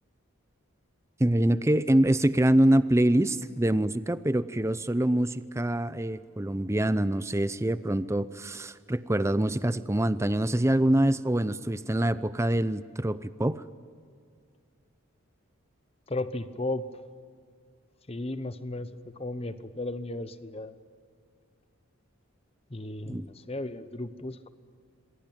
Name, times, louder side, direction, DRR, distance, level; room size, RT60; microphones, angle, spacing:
voice 1, 1.2-13.6 23.0-23.3, right 1 dB, 15° right, 15 dB, 0.6 m, -25 dB
voice 2, 16.1-16.8 18.1-18.9 19.2-20.7 22.7-24.5, left 2 dB, 25° left, 13 dB, 0.9 m, -34 dB
27.5 x 21.0 x 8.8 m, 2.2 s
head